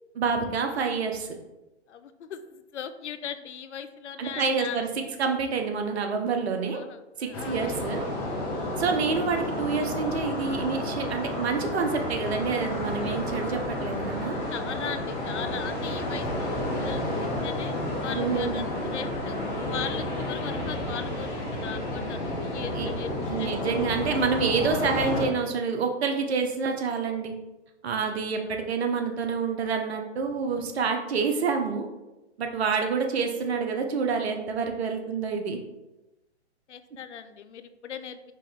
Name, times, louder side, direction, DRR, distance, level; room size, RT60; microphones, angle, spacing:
voice 1, 0.2-1.3 4.2-4.9 5.2-6.8 7.2-8.1 8.8-14.4 18.1-18.6 22.7-22.9 23.3-27.4 27.8-31.9 32.4-35.6, right 5 dB, 65° right, 4 dB, 0.8 m, -27 dB
voice 2, 1.9-4.9 6.7-7.9 8.6-8.8 14.5-19.4 19.7-23.1 23.4-23.7 28.0-28.2 32.6-32.7 36.7-38.3, left 8 dB, 80° left, 10 dB, 0.5 m, -39 dB
sound 1, 7.3-25.2, left 1 dB, 5° left, 0.4 m, -31 dB
4.5 x 3.0 x 3.5 m, 1.0 s
figure-of-eight pair, 125°, 35 cm